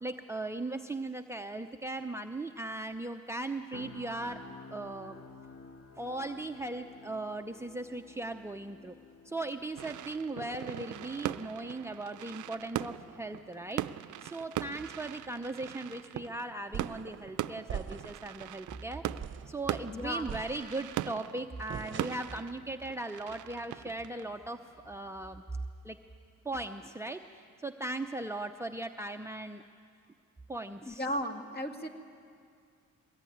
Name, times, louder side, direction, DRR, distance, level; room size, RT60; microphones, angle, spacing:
voice 1, 0.0-4.4 4.7-5.2 6.0-8.9 9.2-19.0 19.5-25.4 25.8-26.0 26.4-29.6 30.5-31.1, right 2 dB, 10° right, 5 dB, 0.7 m, -38 dB
sound 1, 3.7-17.7 18.1-18.3, left 3 dB, 50° left, 1.9 m, -54 dB
sound 2, 9.8-25.1, right 13 dB, 75° right, 0.6 m, -40 dB
sound 3, 16.7-17.1 17.7-18.3 18.7-18.8 19.2-19.6 20.3-21.0 21.7-22.4, right 7 dB, 40° right, 0.9 m, -41 dB
voice 2, 19.9-20.3 30.9-31.9, equal, 30° left, 4 dB, 2.2 m, -35 dB
22.0 x 19.0 x 9.4 m, 2.3 s
cardioid pair, 90°, 30 cm